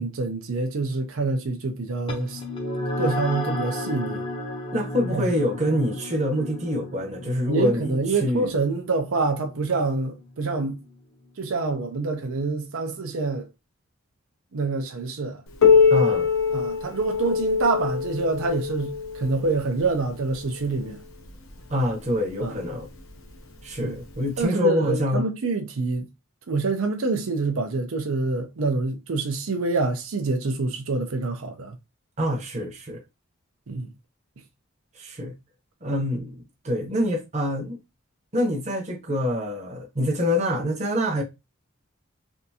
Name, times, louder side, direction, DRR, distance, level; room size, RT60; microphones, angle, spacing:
voice 1, 0.0-2.4 3.0-4.2 5.1-5.3 7.5-10.8 11.4-13.5 14.5-15.4 16.5-21.0 22.4-22.5 23.8-23.9 24.4-26.1 26.5-31.7 33.7-33.9, right 3 dB, 75° right, 0.5 m, -26 dB
sound 1, 2.1-10.9, left 1 dB, 25° left, 0.6 m, -33 dB
voice 2, 4.7-8.5 15.9-16.3 21.7-22.9 23.6-25.3 32.2-33.0 35.0-35.3 35.8-37.8 38.3-41.2, left 1 dB, 30° right, 0.8 m, -26 dB
Piano, 15.6-20.9 21.8-21.9 22.4-22.5 23.3-23.4 24.4-24.5, left 6 dB, 75° left, 0.7 m, -23 dB
3.5 x 2.6 x 2.7 m
head